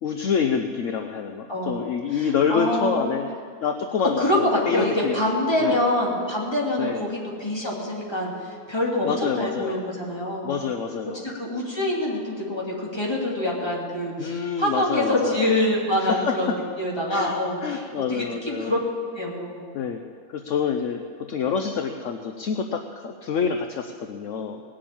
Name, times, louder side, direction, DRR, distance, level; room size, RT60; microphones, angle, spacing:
voice 1, 0.0-3.3 3.6-5.2 5.6-5.8 6.8-7.0 9.0-9.8 10.4-11.2 14.2-15.4 16.0-16.5 17.1-17.3 17.6-18.7 19.7-20.0 20.3-21.0 21.3-24.6, left 6 dB, 65° left, 6 dB, 1.0 m, -27 dB
voice 2, 2.1-3.0 4.2-10.5 11.2-16.5 16.8-17.8 18.1-18.8 19.1-19.7, left 1 dB, 15° left, -3 dB, 2.9 m, -25 dB
19.0 x 7.6 x 8.6 m, 2.3 s
omnidirectional pair, 1.5 m